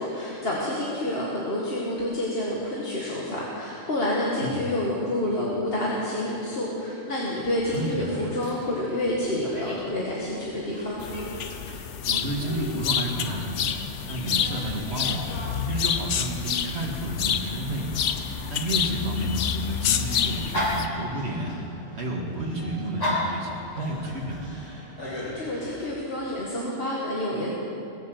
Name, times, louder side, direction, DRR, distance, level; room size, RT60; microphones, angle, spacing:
voice 1, 0.0-11.0 25.0-27.5, left 1 dB, 55° left, -5 dB, 2.0 m, -28 dB
Dog, 7.6-25.9, left 1 dB, 35° left, 3.2 m, -37 dB
voice 2, 7.7-8.0 12.1-13.8 14.1-15.3 15.7-18.1 18.5-21.5 22.0-24.5, right 1 dB, 65° right, 0 dB, 2.2 m, -31 dB
sound 1, 11.0-20.9, left 8 dB, 85° left, 1.0 m, -28 dB
21.5 x 7.1 x 7.7 m, 2.7 s
omnidirectional pair, 1.2 m